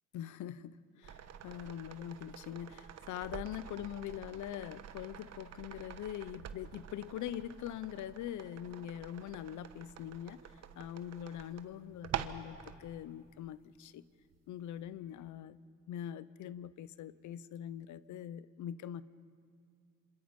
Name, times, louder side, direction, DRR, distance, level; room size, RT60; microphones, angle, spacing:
voice 1, 0.1-10.4 10.8-14.0 14.5-15.6 15.9-19.0, left 11 dB, 75° left, 17 dB, 0.7 m, -43 dB
sound 1, 1.0-12.8 14.3-14.4, right 9 dB, 55° right, 1.2 m, -47 dB
27.0 x 26.5 x 5.3 m, 2.1 s
cardioid pair, 90°, 30 cm